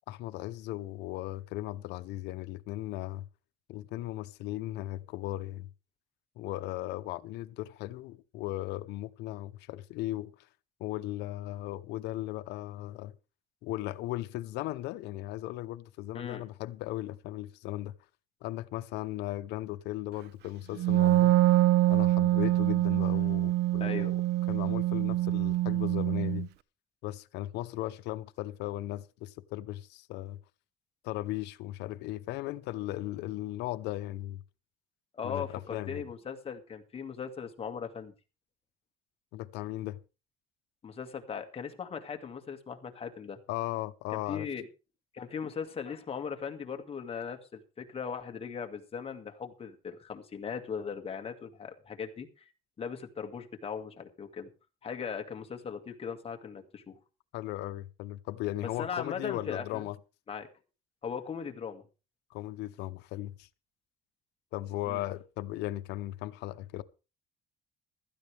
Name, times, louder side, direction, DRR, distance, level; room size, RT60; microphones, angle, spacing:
voice 1, 0.1-3.3 3.7-5.7 6.4-10.5 10.8-13.2 13.6-17.9 18.4-21.4 21.9-24.2 24.5-26.5 27.0-30.4 31.0-34.4 35.2-35.4 35.7-36.1 39.3-40.0 43.5-44.5 57.3-60.0 62.3-63.5 64.5-66.8, left 15 dB, 90° left, 0.8 m, -37 dB
Wind instrument woodwind instrument, 20.8-26.5, right 16 dB, 80° right, 0.5 m, -25 dB
voice 2, 23.8-24.1 35.1-38.1 40.8-43.4 44.1-44.7 45.1-52.4 52.8-54.5 54.8-57.0 58.8-59.9 60.3-60.5 61.0-61.8 64.9-65.0, left 6 dB, 35° left, 2.0 m, -38 dB
15.5 x 13.0 x 3.4 m
cardioid pair, 110°, 17 cm